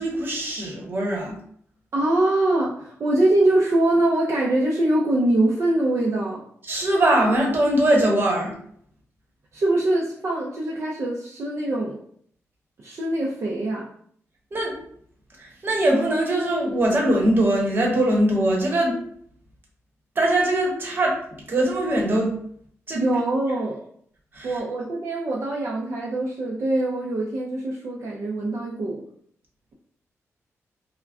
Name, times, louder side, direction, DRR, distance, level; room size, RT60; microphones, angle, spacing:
voice 1, 0.0-1.4 6.6-8.5 14.5-14.8 15.4-19.0 20.1-21.2 21.5-22.4 22.9-23.0 24.3-24.6, right 1 dB, 40° right, -2 dB, 1.0 m, -21 dB
voice 2, 1.9-6.4 9.5-12.0 12.8-13.9 22.9-23.8 24.4-29.0, right 1 dB, 55° right, -4 dB, 0.5 m, -23 dB
2.3 x 2.1 x 3.5 m, 0.63 s
cardioid pair, 100°, 5 cm